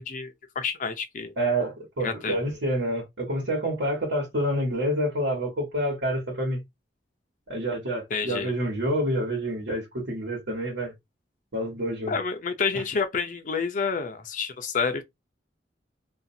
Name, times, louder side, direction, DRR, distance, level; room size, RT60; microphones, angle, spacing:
voice 1, 0.0-1.3 2.0-2.4 8.1-8.5 12.1-15.0, left 5 dB, 45° left, 0.4 m, -29 dB
voice 2, 1.4-6.6 7.5-10.9 11.5-12.1 12.7-12.8, right 1 dB, 85° right, 1.3 m, -28 dB
2.6 x 2.3 x 2.6 m
head